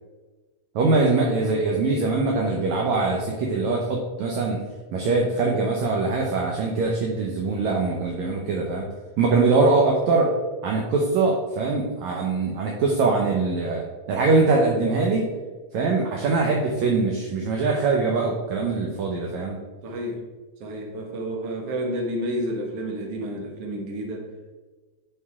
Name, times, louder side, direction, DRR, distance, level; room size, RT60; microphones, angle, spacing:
voice 1, 0.8-4.6 4.9-8.9 9.2-10.3 10.6-15.2 15.7-19.6, right 3 dB, 70° right, 0 dB, 2.1 m, -22 dB
voice 2, 19.8-20.2 20.6-24.3, equal, 55° right, 0 dB, 2.2 m, -30 dB
11.0 x 5.4 x 3.6 m, 1.3 s
omnidirectional pair, 3.7 m